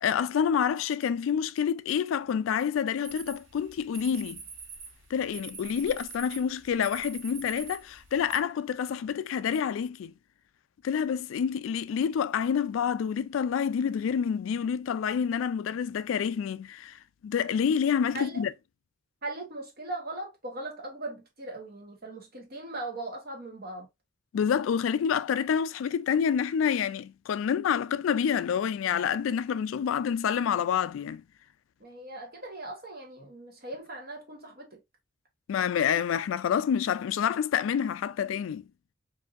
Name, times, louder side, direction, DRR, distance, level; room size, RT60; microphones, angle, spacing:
voice 1, 0.0-4.4 5.1-10.1 10.8-18.5 24.3-31.2 35.5-38.6, left 7 dB, 85° left, 0.3 m, -28 dB
sound 1, 3.0-8.4, right 5 dB, 80° right, 1.4 m, -45 dB
voice 2, 19.2-23.9 31.8-34.8, right 2 dB, 50° right, 1.3 m, -39 dB
4.6 x 2.6 x 2.5 m
head